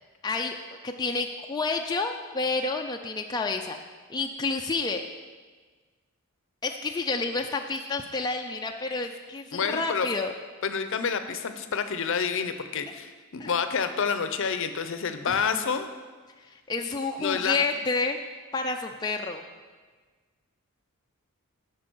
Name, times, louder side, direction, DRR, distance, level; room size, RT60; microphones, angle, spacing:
voice 1, 0.2-0.6 0.8-3.8 4.1-5.0 6.6-10.3 13.4-13.5 15.3-15.7 16.4-18.2 18.5-19.4, left 3 dB, 20° left, 3 dB, 0.4 m, -29 dB
voice 2, 9.5-10.1 10.6-15.9 17.2-17.6, left 6 dB, 60° left, 9 dB, 0.6 m, -28 dB
11.5 x 4.7 x 6.1 m, 1.4 s
head